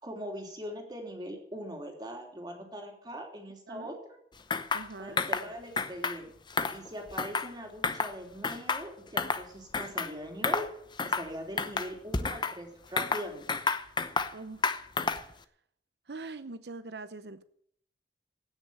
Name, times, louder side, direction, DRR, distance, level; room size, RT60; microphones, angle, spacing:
voice 1, 0.0-4.2 5.0-6.3 6.7-10.7 11.0-13.5, equal, 25° right, 2 dB, 3.3 m, -41 dB
sound 1, 4.5-4.9 5.2-5.5 5.8-6.2 6.5-7.5 7.8-8.1 8.4-9.4 9.7-10.1 10.4-10.7 11.0-11.3 11.6-12.6 13.0-14.3 14.6-15.3, left 4 dB, 25° left, 0.8 m, -30 dB
voice 2, 4.7-5.2 14.3-14.7 16.1-17.4, right 3 dB, 65° right, 12 dB, 0.8 m, -43 dB
16.5 x 6.7 x 9.0 m, 0.66 s
head